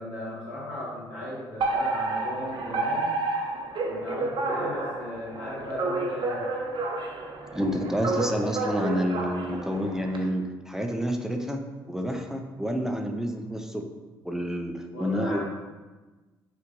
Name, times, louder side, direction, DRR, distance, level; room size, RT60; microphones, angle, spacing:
voice 1, 0.0-3.1 3.8-6.5 14.9-15.4, left 1 dB, 75° left, -7 dB, 1.3 m, -36 dB
Alarm, 1.6-10.2, right 2 dB, 45° right, 0.8 m, -30 dB
voice 2, 7.5-13.8 14.2-15.4, equal, 5° right, 3 dB, 0.5 m, -29 dB
5.6 x 2.5 x 3.0 m, 1.3 s
hypercardioid pair, 50°, 11 cm